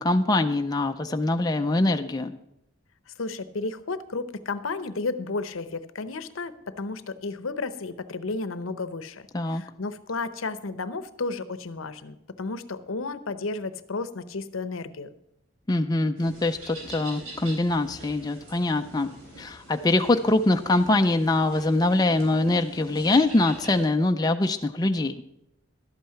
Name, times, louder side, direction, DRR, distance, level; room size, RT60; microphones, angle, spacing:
voice 1, 0.0-2.4 9.3-9.6 15.7-19.1 19.4-25.2, left 2 dB, 20° left, 6 dB, 0.4 m, -23 dB
voice 2, 3.2-15.1, left 3 dB, 80° left, 13 dB, 0.7 m, -33 dB
sound 1, 16.2-23.9, right 1 dB, 80° right, 4.2 m, -45 dB
12.0 x 8.5 x 5.7 m, 0.82 s
head